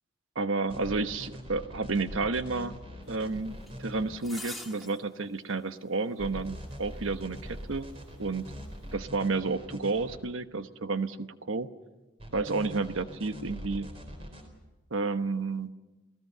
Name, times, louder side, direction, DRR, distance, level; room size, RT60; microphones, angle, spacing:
voice 1, 0.3-2.7 3.1-7.9 8.2-8.5 8.9-11.7 12.3-13.9 14.9-15.7, right 3 dB, 85° right, 10 dB, 1.1 m, -31 dB
sound 1, 0.6-4.2 6.2-10.2 12.2-14.5, equal, 30° right, 4.2 m, -43 dB
sound 2, 3.7-3.8 4.2-5.0 5.5-5.6 6.7-6.8, left 2 dB, ahead, 1.9 m, -42 dB
28.5 x 17.0 x 6.9 m, 1.1 s
head